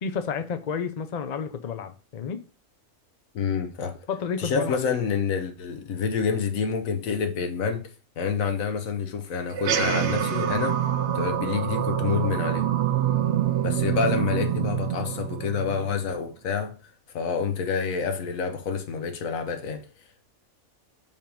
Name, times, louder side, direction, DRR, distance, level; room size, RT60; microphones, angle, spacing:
voice 1, 0.0-2.4 4.1-5.0, left 6 dB, 45° left, 0.5 m, -31 dB
voice 2, 3.3-4.0 4.4-7.9 8.2-10.8 11.1-12.7 13.6-16.8 17.1-19.9, left 6 dB, 75° left, 1.3 m, -28 dB
sound 1, 9.5-16.2, right 10 dB, 60° right, 0.8 m, -26 dB
5.4 x 3.5 x 5.0 m
omnidirectional pair, 1.4 m